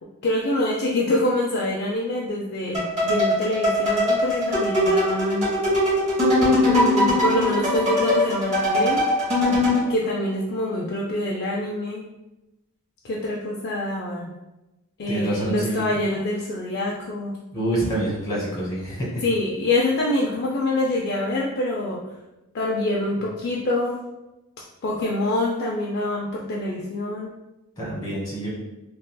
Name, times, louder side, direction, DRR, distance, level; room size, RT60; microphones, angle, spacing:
voice 1, 0.2-5.5 6.6-9.0 9.9-12.1 13.0-14.3 15.0-17.3 19.2-22.0 22.5-24.0 24.8-27.3, left 1 dB, 50° left, -3 dB, 0.4 m, -25 dB
sound 1, 2.7-9.9, left 1 dB, 30° right, 1.2 m, -21 dB
voice 2, 15.1-15.8 17.5-19.2 27.8-28.5, right 1 dB, 20° left, -5 dB, 1.3 m, -26 dB
3.8 x 2.4 x 2.2 m, 0.97 s
head